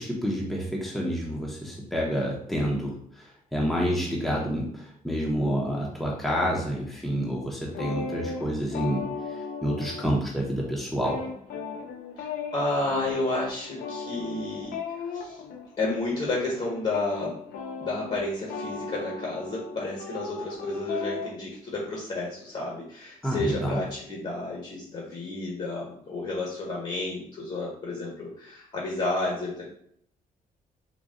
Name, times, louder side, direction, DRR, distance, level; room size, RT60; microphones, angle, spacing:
voice 1, 0.0-9.0 9.3-11.2 23.2-23.8, equal, ahead, -3 dB, 0.8 m, -28 dB
sound 1, 7.7-10.4 10.7-21.3, left 5 dB, 85° left, 0.6 m, -37 dB
voice 2, 12.5-14.8 15.1-15.4 15.8-17.4 17.8-29.6, left 2 dB, 45° left, -3 dB, 1.2 m, -31 dB
4.0 x 2.3 x 3.6 m, 0.66 s
cardioid pair, 120°, 15 cm